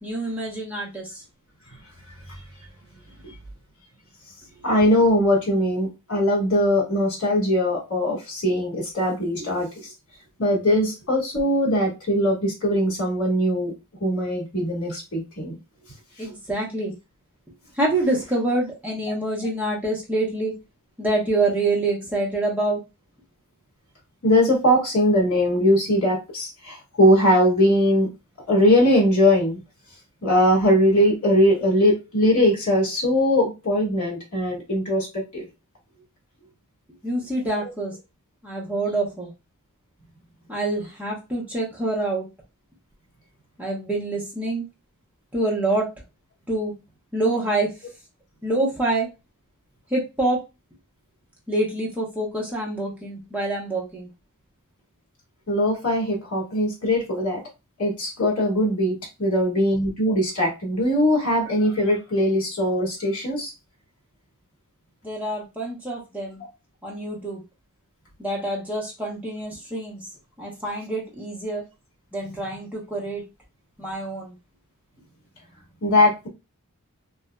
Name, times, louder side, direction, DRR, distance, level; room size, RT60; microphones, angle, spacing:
voice 1, 0.0-1.2 16.2-16.9 17.7-20.5 21.0-22.8 37.0-38.0 38.4-39.3 40.5-42.3 43.6-44.7 45.3-45.9 46.5-46.7 47.1-47.7 48.4-49.1 49.9-50.4 51.5-54.1 65.0-66.4 66.8-67.4 68.2-70.1 70.4-71.6 72.1-73.2 73.8-74.3, right 2 dB, 5° right, -4 dB, 1.0 m, -26 dB
voice 2, 4.6-9.9 10.4-13.7 14.0-15.5 24.2-28.1 28.5-29.6 30.2-35.4 37.6-37.7 55.5-57.4 57.8-63.5 75.8-76.3, left 1 dB, 65° left, -1 dB, 1.7 m, -21 dB
2.7 x 2.7 x 2.3 m, 0.25 s
head